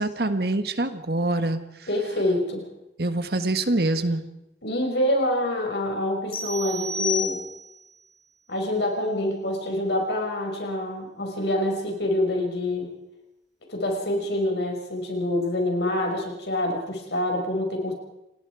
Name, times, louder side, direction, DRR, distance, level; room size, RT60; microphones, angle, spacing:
voice 1, 0.0-1.6 3.0-4.2, right 2 dB, 60° right, 9 dB, 1.5 m, -25 dB
voice 2, 1.9-2.6 4.6-7.4 8.5-12.9 13.7-17.9, left 1 dB, 80° left, 2 dB, 5.8 m, -26 dB
sound 1, 6.3-7.9, left 3 dB, 55° left, 6.0 m, -30 dB
28.5 x 20.0 x 4.9 m, 0.89 s
head